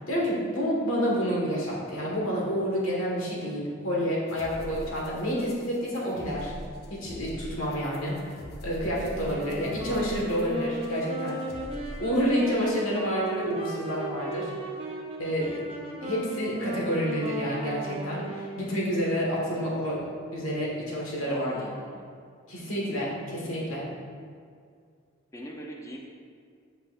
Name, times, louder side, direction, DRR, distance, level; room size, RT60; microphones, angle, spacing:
voice 1, 0.1-6.5 6.9-8.2 8.6-11.4 12.0-14.5 15.2-15.6 16.0-21.6 22.5-23.9, equal, 90° left, -4 dB, 1.5 m, -29 dB
sound 1, 4.3-12.1, equal, 50° left, 0.7 m, -42 dB
Wind instrument woodwind instrument, 9.0-18.7, right 2 dB, 30° right, 0.7 m, -36 dB
voice 2, 21.2-22.0 25.3-26.0, equal, 15° left, -1 dB, 0.6 m, -40 dB
7.7 x 5.2 x 2.5 m, 2.2 s
head